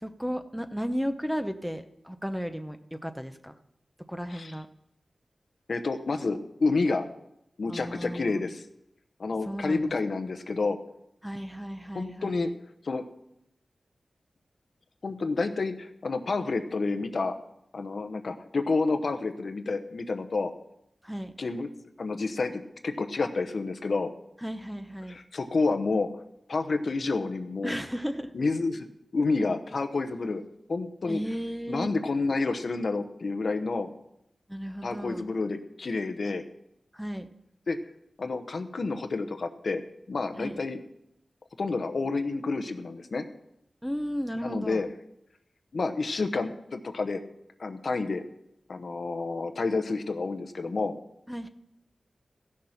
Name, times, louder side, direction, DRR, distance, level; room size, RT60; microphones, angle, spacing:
voice 1, 0.0-3.6 4.1-4.7 7.7-8.5 9.5-9.9 11.2-12.5 21.0-21.3 24.4-25.2 27.6-28.3 31.1-31.9 34.5-35.3 36.9-37.3 40.4-40.6 43.8-44.8 51.3-51.5, equal, ahead, 8 dB, 0.8 m, -34 dB
voice 2, 5.7-7.1 7.6-8.6 9.2-10.8 11.9-12.5 12.8-13.0 15.0-17.3 17.7-20.5 21.4-21.7 22.0-24.1 25.1-26.1 26.5-27.8 28.3-28.9 29.1-30.4 30.7-31.2 31.7-33.9 34.8-36.4 37.7-37.8 38.2-39.8 40.1-40.8 41.6-43.3 44.4-44.9 45.7-47.2 47.6-48.2 48.7-51.0, left 3 dB, 65° left, 8 dB, 0.8 m, -29 dB
15.0 x 6.5 x 5.7 m, 0.80 s
wide cardioid pair, 70°, 0 cm